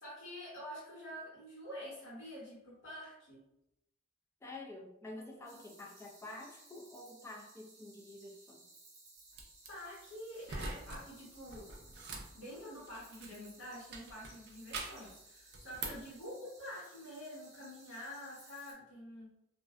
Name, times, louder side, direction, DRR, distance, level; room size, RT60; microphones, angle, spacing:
voice 1, 0.0-3.4 5.3-5.6 9.7-11.7 12.3-19.3, equal, 70° left, -12 dB, 1.2 m, -47 dB
voice 2, 4.4-8.6, left 2 dB, 15° left, -1 dB, 0.4 m, -49 dB
sound 1, 5.4-18.7, right 2 dB, 35° right, 0.8 m, -60 dB
sound 2, 9.3-9.7 10.4-11.0 11.3-13.5 13.9-15.1 15.5-16.1, right 3 dB, 55° right, 0.4 m, -44 dB
2.5 x 2.1 x 2.3 m, 0.84 s
head